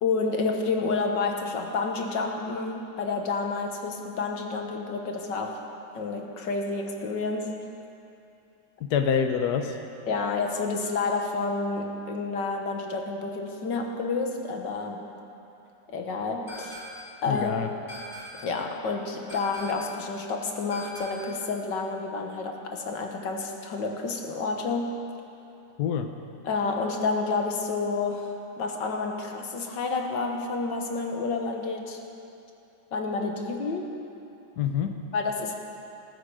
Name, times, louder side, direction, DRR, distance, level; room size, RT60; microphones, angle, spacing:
voice 1, 0.0-5.6 5.9-7.6 10.1-15.1 15.9-16.8 17.2-17.7 18.4-25.0 26.4-32.0 32.9-33.9 35.1-35.6, left 4 dB, 90° left, 2 dB, 2.0 m, -29 dB
voice 2, 8.8-9.8 17.3-17.7 25.8-26.1 34.6-35.0, left 7 dB, 70° left, 6 dB, 1.3 m, -26 dB
sound 1, 16.5-17.2 17.9-18.6 19.3-20.0 20.7-21.4, equal, 40° left, 2.4 m, -42 dB
19.5 x 14.0 x 4.9 m, 2.7 s
omnidirectional pair, 1.9 m